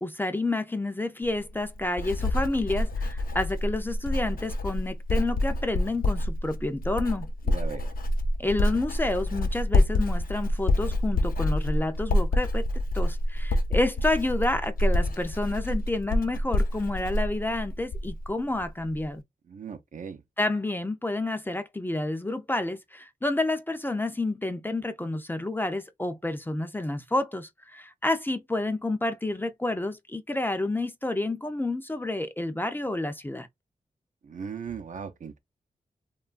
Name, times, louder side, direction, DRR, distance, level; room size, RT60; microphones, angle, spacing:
voice 1, 0.0-7.3 8.4-12.6 12.9-19.2 20.4-33.5, left 2 dB, 15° left, 0.4 m, -29 dB
Writing, 1.2-18.3 18.6-19.0, left 1 dB, 75° left, 0.7 m, -27 dB
voice 2, 7.5-7.9 19.5-20.2 34.3-35.4, right 6 dB, 60° right, 0.5 m, -38 dB
3.0 x 2.3 x 2.4 m
wide cardioid pair, 80°, 15 cm